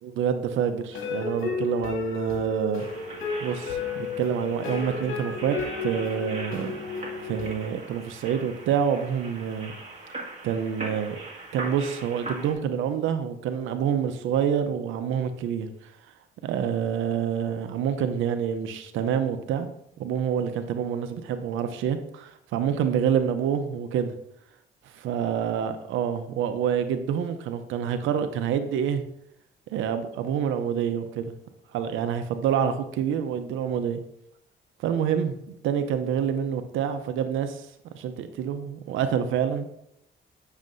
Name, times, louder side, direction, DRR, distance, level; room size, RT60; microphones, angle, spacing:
voice 1, 0.0-2.8 3.4-6.7 7.2-9.7 10.4-11.2 11.5-15.9 16.4-19.7 20.0-24.1 24.9-29.0 29.7-31.2 31.7-34.0 34.8-35.3 35.6-37.7 37.9-39.7, right 8 dB, 85° right, 9 dB, 0.6 m, -27 dB
sound 1, 0.9-7.5, left 4 dB, 80° left, 2.1 m, -33 dB
sound 2, 2.8-12.5, right 2 dB, 35° right, 1.9 m, -41 dB
9.2 x 6.4 x 2.6 m, 0.75 s
cardioid pair, 90°, 20 cm